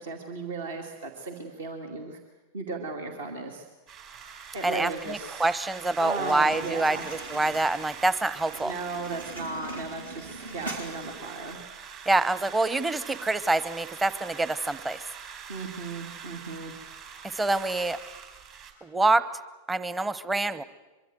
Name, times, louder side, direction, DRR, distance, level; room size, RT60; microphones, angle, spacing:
voice 1, 0.0-2.2 2.5-3.7 4.5-5.4 6.0-7.0 8.6-11.6 15.5-16.7, right 3 dB, 60° right, 3 dB, 2.4 m, -36 dB
sound 1, 3.9-18.7, right 6 dB, 40° right, 4.1 m, -44 dB
voice 2, 4.6-8.7 12.1-15.0 17.3-18.0 18.8-19.2 19.7-20.6, right 2 dB, 10° right, 15 dB, 0.9 m, -26 dB
sound 2, 6.3-11.3, right 2 dB, 80° right, 3.6 m, -42 dB
23.5 x 23.5 x 7.9 m, 1.2 s
figure-of-eight pair, 90°, 0 cm